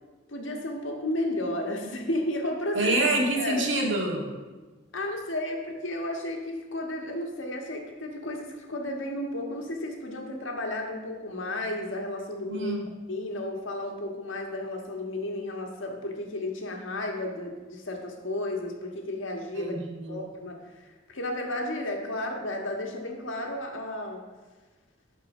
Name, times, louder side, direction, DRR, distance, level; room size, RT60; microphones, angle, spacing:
voice 1, 0.3-3.0 3.4-3.7 4.9-12.8 13.1-19.8 20.1-24.2, left 1 dB, 80° left, 2 dB, 1.6 m, -33 dB
voice 2, 2.8-4.2 12.5-12.8 19.5-20.3, right 2 dB, 75° right, 0 dB, 1.8 m, -27 dB
11.5 x 4.6 x 6.2 m, 1.3 s
head